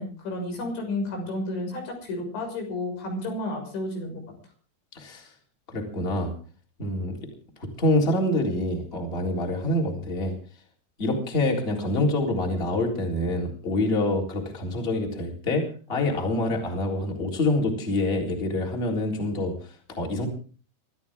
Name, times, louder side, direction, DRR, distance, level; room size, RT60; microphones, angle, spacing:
voice 1, 0.0-4.2, left 2 dB, 85° left, 3 dB, 8.5 m, -31 dB
voice 2, 4.9-5.3 5.7-6.3 6.8-7.2 7.6-10.3 11.0-20.3, left 1 dB, 15° left, 1 dB, 3.4 m, -26 dB
25.5 x 13.5 x 3.6 m, 0.40 s
omnidirectional pair, 5.1 m